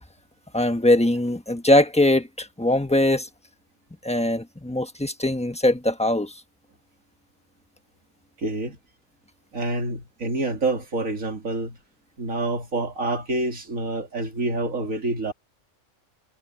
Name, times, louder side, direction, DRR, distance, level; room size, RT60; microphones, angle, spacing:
voice 1, 0.5-3.3 4.0-6.3, left 1 dB, 5° left, 1.1 m, -21 dB
voice 2, 8.4-8.8 9.5-11.8 12.2-15.3, right 2 dB, 70° right, 3.0 m, -27 dB
omnidirectional pair, 1.4 m